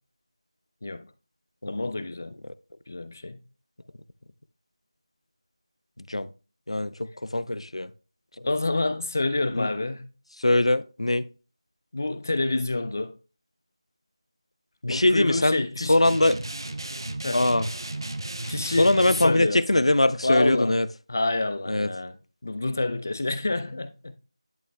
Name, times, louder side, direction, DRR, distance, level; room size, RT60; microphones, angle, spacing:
voice 1, 1.7-2.4 2.9-3.4 8.4-10.1 11.9-13.2 14.9-16.0 17.2-17.5 18.5-19.9 20.2-20.8 21.1-22.2 22.4-24.2, left 2 dB, 30° left, 0.4 m, -28 dB
voice 2, 6.0-6.3 6.7-7.9 8.4-8.5 9.5-9.7 10.4-11.2 14.8-16.4 17.3-17.7 18.7-20.9 21.7-21.9, left 1 dB, 80° left, 0.5 m, -22 dB
sound 1, 16.0-19.3, right 2 dB, 50° right, 0.8 m, -34 dB
10.5 x 5.6 x 2.2 m
figure-of-eight pair, 175°, 3 cm